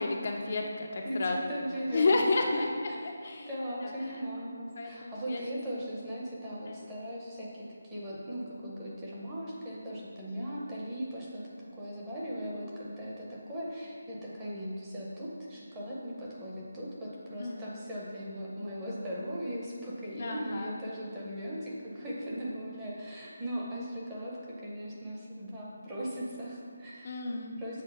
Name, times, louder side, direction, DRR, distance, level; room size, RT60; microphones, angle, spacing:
voice 1, 0.0-1.4 1.9-2.7 3.2-3.5 3.8-4.2 4.8-5.4 6.7-6.8 10.3-10.6 17.4-17.7 20.1-20.8 27.0-27.8, left 3 dB, 30° left, 1 dB, 0.4 m, -31 dB
voice 2, 1.0-2.2 2.6-2.7 3.3-27.1 27.6-27.8, equal, 10° right, -6 dB, 0.7 m, -38 dB
7.4 x 3.7 x 5.5 m, 2.1 s
figure-of-eight pair, 180°, 0 cm